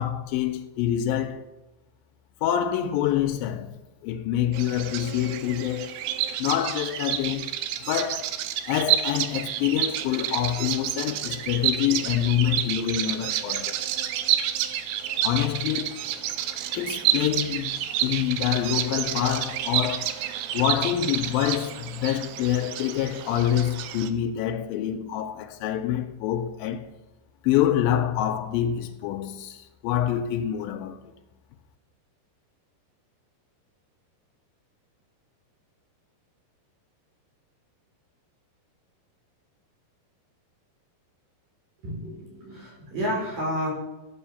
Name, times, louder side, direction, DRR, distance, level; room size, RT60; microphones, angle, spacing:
voice 1, 0.0-1.5 2.4-3.7 4.0-5.9 6.4-7.5 7.8-8.3 8.7-13.7 15.2-16.0 16.7-20.2 20.5-26.9 27.4-31.1, left 11 dB, 85° left, 2.1 m, -26 dB
Bird vocalization bird call bird song, 4.5-24.1, right 11 dB, 80° right, 2.8 m, -29 dB
voice 2, 41.8-43.7, equal, 55° right, 5.5 m, -30 dB
11.5 x 7.0 x 7.0 m
omnidirectional pair, 4.7 m